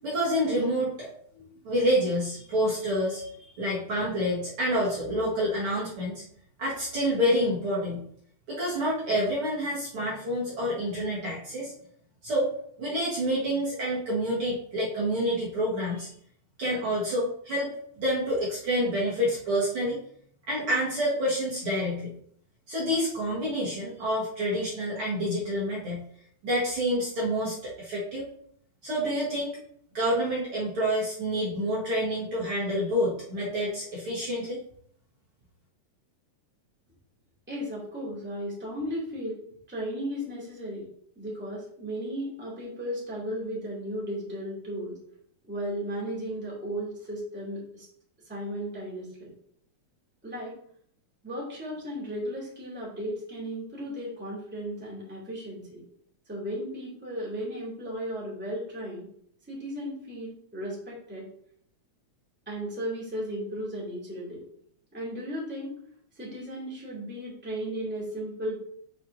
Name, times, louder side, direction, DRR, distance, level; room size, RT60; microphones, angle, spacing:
voice 1, 0.0-6.2 6.6-8.0 8.5-11.7 12.2-12.5 12.8-16.1 16.6-17.7 18.0-20.0 20.5-22.1 22.7-26.0 26.4-28.3 28.8-29.6 29.9-34.6, equal, 50° right, -6 dB, 2.3 m, -28 dB
voice 2, 37.5-39.4 39.7-40.8 41.2-45.0 45.5-47.9 48.3-49.3 50.2-50.6 51.2-55.8 56.3-59.1 59.5-61.3 62.5-64.4 64.9-65.8 66.2-68.6, equal, 5° right, -6 dB, 2.3 m, -35 dB
8.5 x 5.8 x 2.7 m, 0.65 s
omnidirectional pair, 3.3 m